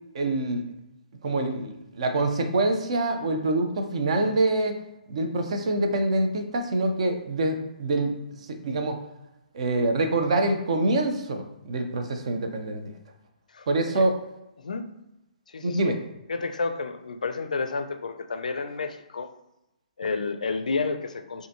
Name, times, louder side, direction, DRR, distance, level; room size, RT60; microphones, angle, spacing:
voice 1, 0.1-0.7 1.2-4.8 5.1-8.2 8.5-9.0 9.5-12.9 13.7-14.2 15.6-16.0, right 2 dB, 50° right, 5 dB, 0.6 m, -25 dB
voice 2, 15.5-16.0 16.3-19.3 20.0-21.5, left 4 dB, 65° left, 8 dB, 0.4 m, -30 dB
5.0 x 2.6 x 2.7 m, 0.89 s
figure-of-eight pair, 125°, 4 cm